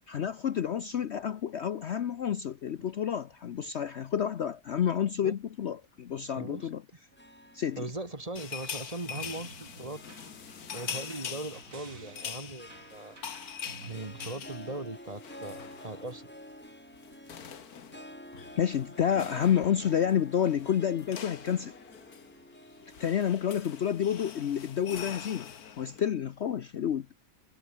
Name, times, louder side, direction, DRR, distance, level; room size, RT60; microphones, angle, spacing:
voice 1, 0.1-6.8 7.5-7.9 18.6-21.7 23.0-25.5 25.8-27.1, left 9 dB, 55° left, 0.9 m, -29 dB
voice 2, 6.4-6.7 7.8-10.0 10.7-13.2 13.9-16.3, right 2 dB, 25° right, 1.9 m, -39 dB
Harp, 7.1-25.6, equal, 5° left, 4.3 m, -51 dB
sound 1, 8.4-16.2 16.5-16.7 16.9-26.0, left 8 dB, 80° left, 1.9 m, -44 dB
sound 2, 9.1-14.3, right 4 dB, 60° right, 3.1 m, -51 dB
omnidirectional pair, 1.6 m